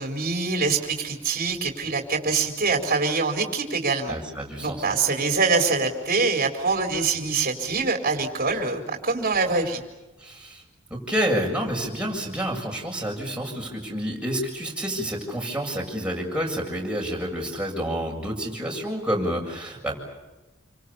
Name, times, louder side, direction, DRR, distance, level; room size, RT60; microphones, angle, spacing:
voice 1, 0.0-4.2 4.6-9.8, right 4 dB, 45° right, 2 dB, 4.1 m, -24 dB
voice 2, 4.1-4.8 10.2-10.6 10.9-20.0, equal, 5° right, -1 dB, 7.5 m, -29 dB
29.0 x 25.5 x 6.9 m, 1.1 s
head